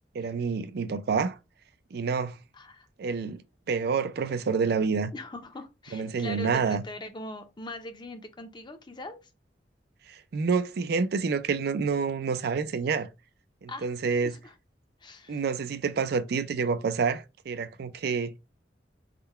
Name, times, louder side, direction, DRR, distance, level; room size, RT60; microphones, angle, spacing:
voice 1, 0.1-1.4 1.9-2.4 3.0-3.4 3.7-5.1 5.9-6.8 10.1-13.1 13.6-14.3 15.3-18.3, right 5 dB, 60° right, 0.4 m, -28 dB
voice 2, 2.5-2.9 5.1-9.2 13.7-13.9 14.2-14.5 15.0-15.4, left 1 dB, 25° left, 0.6 m, -41 dB
3.7 x 2.2 x 4.3 m
head